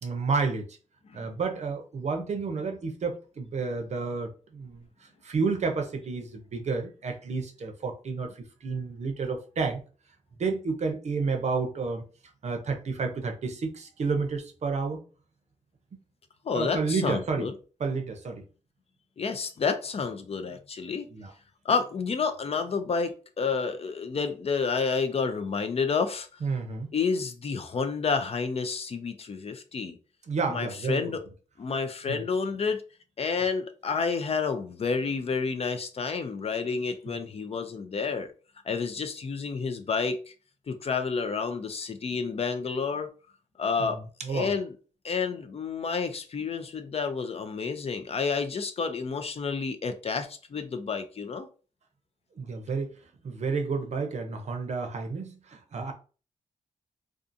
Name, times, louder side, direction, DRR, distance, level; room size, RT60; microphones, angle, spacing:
voice 1, 0.0-0.7 1.1-8.3 8.6-9.8 10.4-12.0 12.4-15.0 16.5-17.5 17.8-18.4 21.1-21.3 26.4-26.9 30.3-31.2 32.1-32.2 37.1-37.2 43.8-44.5 52.3-52.9 53.2-55.9, right 4 dB, 55° right, 0.6 m, -30 dB
voice 2, 16.4-17.5 19.2-21.1 21.7-26.3 26.9-30.0 30.5-31.2 31.6-32.8 33.2-38.3 38.7-40.3 40.7-43.1 43.6-44.0 44.3-44.7 45.0-51.5, left 5 dB, 50° left, 0.4 m, -30 dB
2.5 x 2.4 x 2.6 m
cardioid pair, 70°, 14 cm